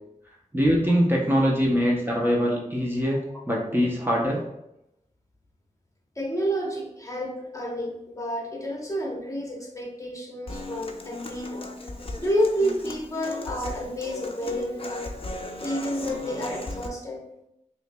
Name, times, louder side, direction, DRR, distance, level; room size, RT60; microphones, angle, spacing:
voice 1, 0.5-4.4, equal, 15° right, -3 dB, 0.7 m, -23 dB
voice 2, 6.2-11.6 12.2-15.1 15.6-17.2, equal, 25° left, -2 dB, 1.0 m, -29 dB
Human voice / Acoustic guitar, 10.5-16.9, left 2 dB, 45° left, 0.5 m, -37 dB
5.3 x 3.1 x 2.2 m, 0.84 s
wide cardioid pair, 85°, 14 cm